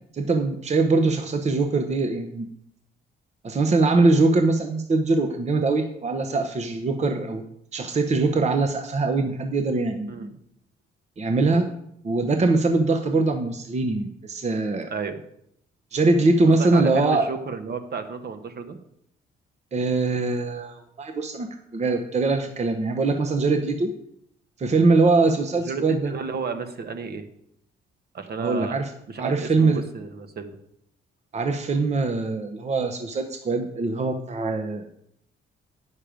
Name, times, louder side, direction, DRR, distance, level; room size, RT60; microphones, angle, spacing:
voice 1, 0.1-2.5 3.4-7.4 7.7-10.3 11.2-11.7 12.0-14.9 15.9-17.3 19.7-23.9 24.6-26.1 28.4-28.9 29.2-29.8 31.3-34.9, right 3 dB, 35° right, 6 dB, 0.9 m, -22 dB
voice 2, 14.9-15.2 16.4-18.8 25.6-27.3 28.1-28.8 29.1-30.6, right 5 dB, 50° right, 7 dB, 1.2 m, -32 dB
9.0 x 6.5 x 5.1 m, 0.73 s
cardioid pair, 90°, 20 cm